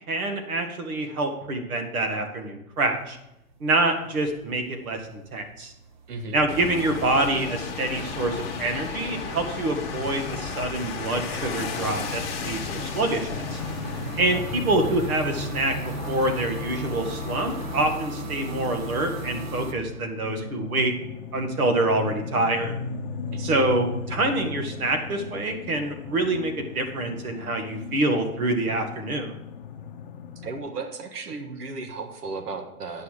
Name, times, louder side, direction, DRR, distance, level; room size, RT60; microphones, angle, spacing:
voice 1, 0.1-3.2 3.6-5.7 6.3-13.6 14.2-15.8 16.1-20.9 21.3-22.7 23.4-29.4, right 2 dB, 65° right, 6 dB, 2.0 m, -26 dB
sound 1, 2.7-3.3 3.5-19.7, right 1 dB, 30° right, 0.7 m, -38 dB
voice 2, 6.1-6.5 14.3-14.5 23.3-23.7 30.4-33.0, right 3 dB, 85° right, 7 dB, 1.8 m, -35 dB
sound 2, 6.5-18.0, left 5 dB, 15° left, 1.1 m, -35 dB
sound 3, 11.0-30.6, left 5 dB, 35° left, 0.7 m, -38 dB
9.6 x 5.7 x 6.6 m, 0.86 s
hypercardioid pair, 165°, 46 cm